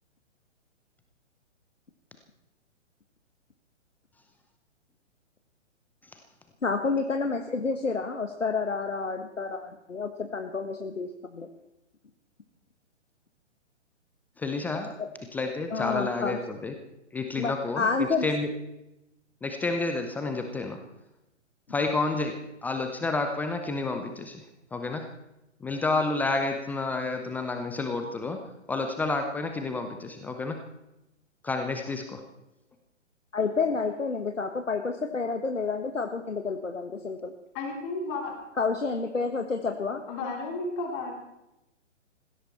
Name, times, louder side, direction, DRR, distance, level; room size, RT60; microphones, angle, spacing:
voice 1, 6.6-11.5 15.0-15.1 15.7-16.4 17.4-18.2 33.3-37.3 38.6-40.0, left 4 dB, 80° left, 5 dB, 1.6 m, -29 dB
voice 2, 14.4-15.0 15.3-16.7 17.1-17.9 18.2-18.5 19.4-20.8 21.7-22.3 22.6-24.4 24.7-25.1 25.6-28.4 28.7-30.6 31.4-32.2, left 3 dB, 5° left, 5 dB, 0.6 m, -30 dB
voice 3, 37.5-38.4 40.1-41.1, left 3 dB, 25° left, 1 dB, 3.4 m, -33 dB
20.0 x 16.0 x 4.4 m, 0.91 s
figure-of-eight pair, 125°, 37 cm